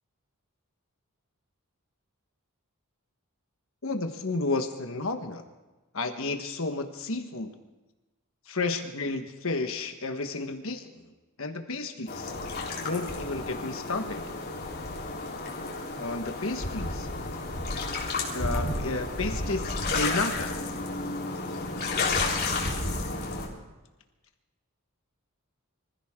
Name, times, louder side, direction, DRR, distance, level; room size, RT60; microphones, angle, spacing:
voice 1, 3.8-5.4 5.9-7.5 8.5-11.1 11.4-12.3 12.8-14.2 16.0-17.1 18.3-20.6, left 3 dB, 65° left, 6 dB, 1.4 m, -32 dB
sound 1, 12.1-23.5, left 3 dB, 45° left, 3.7 m, -31 dB
25.0 x 15.5 x 3.7 m, 1.1 s
head